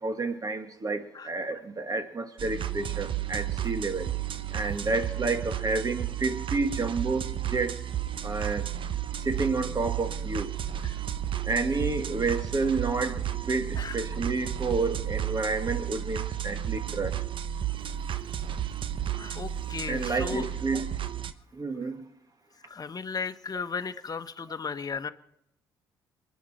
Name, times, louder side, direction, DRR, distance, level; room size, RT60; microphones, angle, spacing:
voice 1, 0.0-4.1 4.5-7.8 8.2-8.7 9.2-10.5 11.4-17.2 19.9-20.9 21.5-22.1, right 3 dB, 35° right, 7 dB, 2.1 m, -30 dB
sound 1, 2.4-21.3, right 11 dB, 50° right, 0.9 m, -33 dB
voice 2, 19.2-20.5 22.7-25.1, left 5 dB, 35° left, 10 dB, 1.2 m, -35 dB
27.5 x 9.5 x 4.4 m, 0.83 s
hypercardioid pair, 50°, 11 cm